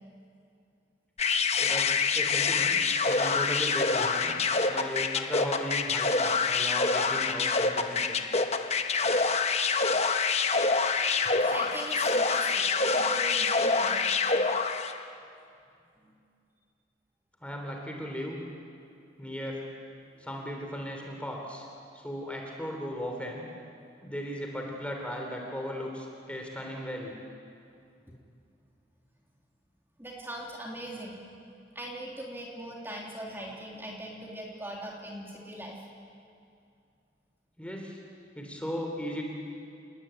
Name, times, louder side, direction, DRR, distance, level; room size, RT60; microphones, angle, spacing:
sound 1, 1.2-15.0, left 4 dB, 40° left, 1.1 m, -26 dB
voice 1, 1.6-2.8 3.1-4.3 4.7-8.2 17.4-18.4 19.2-19.6 20.2-21.6 21.9-23.5 24.0-27.2 37.6-38.0 38.3-39.2, equal, 5° left, 1 dB, 3.3 m, -36 dB
voice 2, 9.2-10.4 10.8-14.1 16.0-16.1 20.1-20.3 30.0-31.2 31.7-35.8, right 1 dB, 15° right, -2 dB, 3.3 m, -41 dB
28.5 x 20.0 x 9.1 m, 2.5 s
head